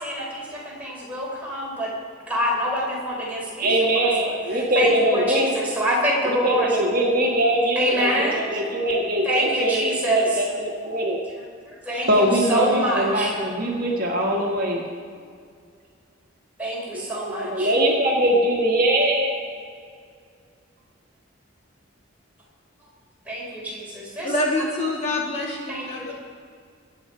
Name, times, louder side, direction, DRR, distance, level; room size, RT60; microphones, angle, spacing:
voice 1, 0.8-1.9 2.3-3.7 4.8-6.7 7.8-8.3 9.3-10.2 11.9-13.3 16.6-16.8 17.1-17.7 23.3-23.4 24.2-24.3 25.7-26.1, equal, 5° right, -5 dB, 4.1 m, -25 dB
voice 2, 3.6-5.5 6.2-11.2 12.1-14.9 16.9-19.3, right 1 dB, 45° right, -1 dB, 1.7 m, -22 dB
voice 3, 24.2-26.1, left 1 dB, 35° left, -3 dB, 2.3 m, -26 dB
22.0 x 8.1 x 4.7 m, 2.1 s
head